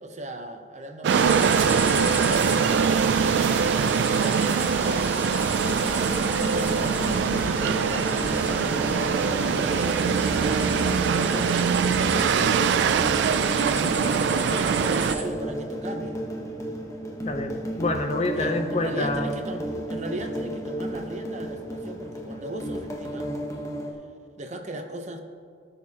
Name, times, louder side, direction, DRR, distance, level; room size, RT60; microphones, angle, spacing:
voice 1, 0.0-3.4 4.2-5.9 6.4-13.1 13.5-16.2 18.4-23.3 24.4-25.2, right 1 dB, 40° right, 5 dB, 0.8 m, -37 dB
sound 1, 1.0-15.1, right 7 dB, 75° right, 0.3 m, -23 dB
sound 2, 1.1-15.2, right 1 dB, 10° right, 1.1 m, -32 dB
sound 3, 5.5-23.9, equal, 15° left, 1.1 m, -33 dB
voice 2, 17.3-19.4, left 2 dB, 35° left, 6 dB, 0.6 m, -27 dB
17.5 x 6.6 x 2.9 m, 2.2 s
head